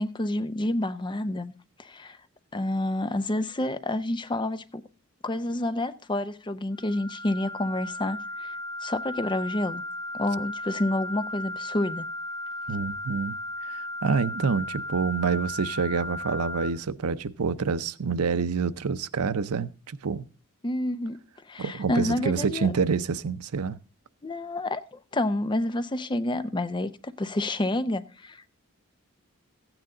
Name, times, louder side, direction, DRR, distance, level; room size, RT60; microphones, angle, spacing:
voice 1, 0.0-1.5 1.8-2.2 2.5-4.8 5.2-8.6 8.8-9.8 10.1-12.1 20.6-21.2 21.5-22.7 24.2-28.5, left 1 dB, 20° left, 0.6 m, -29 dB
sound 1, 6.7-16.7, left 1 dB, 40° left, 3.7 m, -36 dB
voice 2, 12.7-13.4 13.7-20.3 21.6-23.8, right 5 dB, 90° right, 0.6 m, -27 dB
15.0 x 9.0 x 3.8 m
head